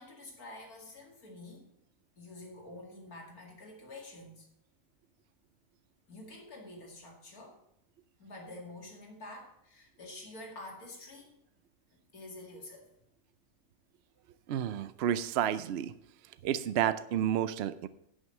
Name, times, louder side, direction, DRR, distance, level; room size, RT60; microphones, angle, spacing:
voice 1, 0.0-1.7 2.2-4.5 6.1-7.6 8.2-11.4 12.1-12.9, left 2 dB, 90° left, 0 dB, 2.8 m, -48 dB
voice 2, 14.5-15.9 16.4-17.9, right 10 dB, 65° right, 13 dB, 0.6 m, -30 dB
11.0 x 6.3 x 5.4 m, 0.78 s
omnidirectional pair, 1.5 m